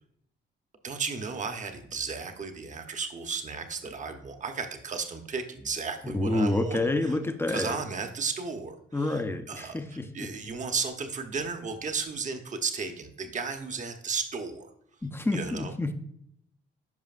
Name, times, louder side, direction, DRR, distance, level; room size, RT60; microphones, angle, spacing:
voice 1, 0.8-6.9 7.5-9.2 9.5-9.8 10.1-14.7 15.3-15.7, right 5 dB, 40° right, 6 dB, 1.0 m, -34 dB
voice 2, 6.1-7.8 8.9-10.3 15.0-15.9, left 2 dB, 10° left, 8 dB, 0.6 m, -28 dB
10.5 x 5.1 x 2.5 m, 0.72 s
cardioid pair, 90°, 20 cm